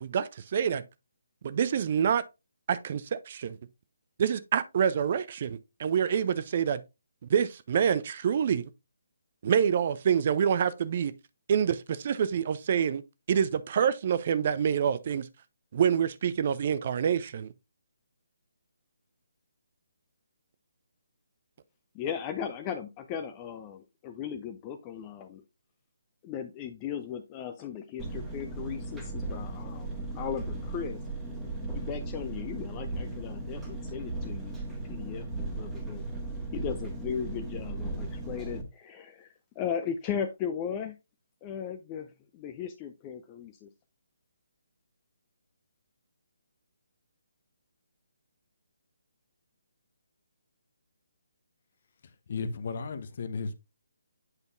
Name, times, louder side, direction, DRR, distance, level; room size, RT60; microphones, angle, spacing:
voice 1, 0.0-0.8 1.4-2.2 2.7-3.6 4.2-6.8 7.3-8.7 9.4-11.1 11.5-13.0 13.3-15.3 15.7-17.5, right 8 dB, 35° right, 0.5 m, -26 dB
voice 2, 21.9-25.4 26.2-29.9 30.1-31.0 31.7-34.5 34.9-35.3 35.6-36.0 36.5-41.0 41.4-43.7, left 8 dB, 20° left, 0.5 m, -37 dB
Engine, 28.0-38.6, right 2 dB, 5° right, 1.4 m, -36 dB
voice 3, 52.3-53.5, left 4 dB, 45° left, 0.8 m, -34 dB
8.1 x 5.2 x 2.5 m
figure-of-eight pair, 140°, 0 cm